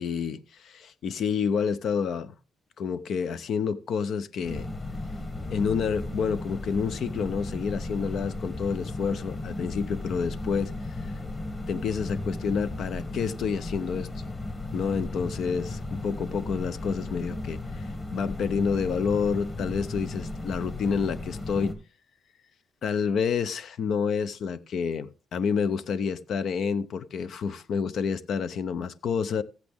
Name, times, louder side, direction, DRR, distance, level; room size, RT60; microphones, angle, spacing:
voice 1, 0.0-2.3 2.8-4.7 5.5-10.7 11.7-14.3 14.7-21.8 22.8-29.4, left 6 dB, 65° left, 0.6 m, -29 dB
sound 1, 4.4-21.7, left 2 dB, 30° left, 1.9 m, -35 dB
14.5 x 8.2 x 3.5 m
cardioid pair, 90°, 0 cm